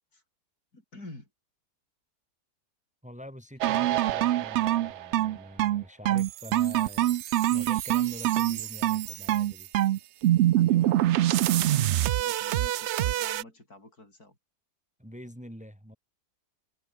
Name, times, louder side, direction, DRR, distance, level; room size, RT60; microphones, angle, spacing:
voice 1, 0.7-1.3 10.6-14.4, left 2 dB, 65° left, 7.5 m, -49 dB
voice 2, 3.0-7.2 7.5-9.7 15.0-16.0, equal, 5° right, 3.7 m, -45 dB
sound 1, 3.6-13.4, right 13 dB, 85° right, 0.6 m, -25 dB
omnidirectional pair, 1.7 m